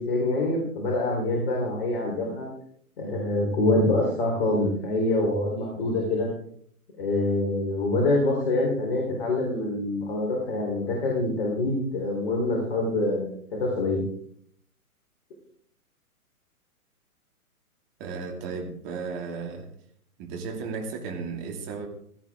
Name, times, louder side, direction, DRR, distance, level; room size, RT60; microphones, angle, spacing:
voice 1, 0.0-2.5 3.0-6.3 7.0-14.0, left 2 dB, 40° left, -1 dB, 4.2 m, -25 dB
voice 2, 18.0-19.7 20.2-21.9, right 4 dB, 25° right, 3 dB, 2.7 m, -34 dB
17.0 x 13.5 x 3.7 m, 0.62 s
figure-of-eight pair, 125°, 44 cm